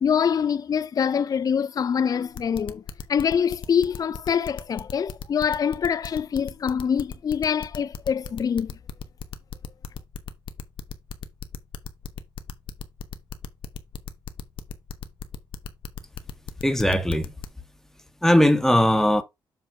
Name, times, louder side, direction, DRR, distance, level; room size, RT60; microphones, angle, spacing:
voice 1, 0.0-2.8 3.1-8.7, left 7 dB, 45° left, 0.4 m, -24 dB
sound 1, 2.3-17.5, left 6 dB, 65° left, 1.0 m, -36 dB
voice 2, 16.6-17.3 18.2-19.2, equal, 5° left, 1.5 m, -19 dB
7.7 x 3.3 x 5.1 m
cardioid pair, 80°, 9 cm